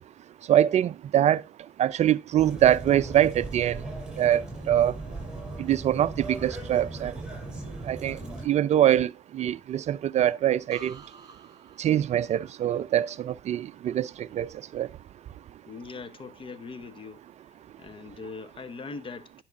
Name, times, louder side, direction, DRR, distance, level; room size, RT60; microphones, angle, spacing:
voice 1, 0.5-1.4 1.8-3.8 4.2-4.9 5.6-7.1 7.9-8.2 8.5-10.9 11.8-14.5 14.7-14.9, right 11 dB, 45° right, 0.4 m, -24 dB
sound 1, 2.4-8.5, right 2 dB, 5° right, 5.4 m, -38 dB
voice 2, 8.2-8.5 15.7-17.3 17.8-19.4, left 4 dB, 35° left, 1.1 m, -41 dB
sound 2, 10.7-14.5 14.9-15.4, right 4 dB, 25° right, 3.3 m, -53 dB
10.5 x 6.0 x 3.6 m
hypercardioid pair, 70°, 16 cm